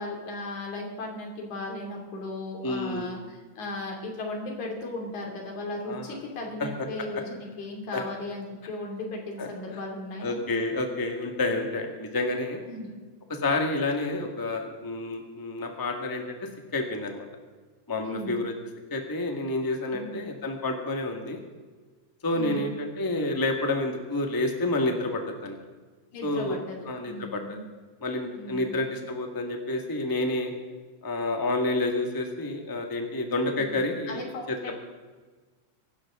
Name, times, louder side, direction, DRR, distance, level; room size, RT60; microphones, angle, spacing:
voice 1, 0.0-10.4 12.7-12.9 18.0-18.4 19.9-20.1 22.3-22.7 26.1-26.8 27.0-27.6 28.3-28.6 34.1-34.7, left 2 dB, 85° left, 1 dB, 4.3 m, -36 dB
voice 2, 2.6-3.1 5.9-6.2 6.6-6.7 7.9-8.0 9.4-9.5 10.2-12.6 13.3-17.2 17.9-18.5 18.9-21.4 22.2-25.6 26.2-26.6 26.9-27.6 28.0-30.5 31.0-34.7, left 2 dB, 10° left, 3 dB, 1.1 m, -29 dB
24.5 x 12.0 x 3.7 m, 1.4 s
omnidirectional pair, 3.3 m